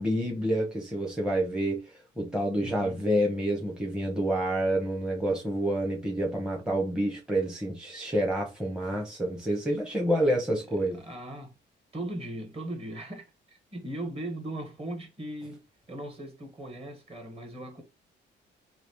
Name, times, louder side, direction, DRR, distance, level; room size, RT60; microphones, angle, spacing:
voice 1, 0.0-1.8 2.2-11.0, right 1 dB, 5° right, 0.9 m, -28 dB
voice 2, 2.6-3.0 9.9-10.2 10.8-11.5 11.9-15.6 15.9-17.8, right 1 dB, 30° right, 1.6 m, -39 dB
3.0 x 2.8 x 3.0 m
cardioid pair, 90°, 20 cm